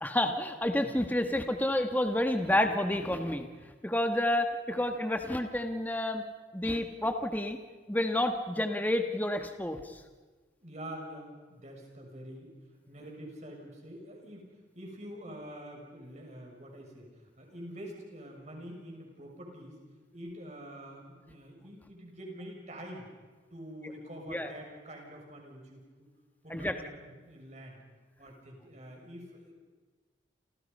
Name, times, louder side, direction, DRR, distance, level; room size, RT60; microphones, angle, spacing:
voice 1, 0.0-3.5 3.8-6.2 6.5-7.6 7.9-10.0 24.3-24.5 26.5-26.7, left 1 dB, 10° left, 6 dB, 1.5 m, -29 dB
voice 2, 10.6-12.5 12.9-14.5 14.7-17.0 17.4-19.8 20.1-23.1 23.5-25.8 26.4-27.8 28.2-29.5, equal, 40° right, 1 dB, 6.7 m, -46 dB
29.0 x 29.0 x 5.5 m, 1.3 s
head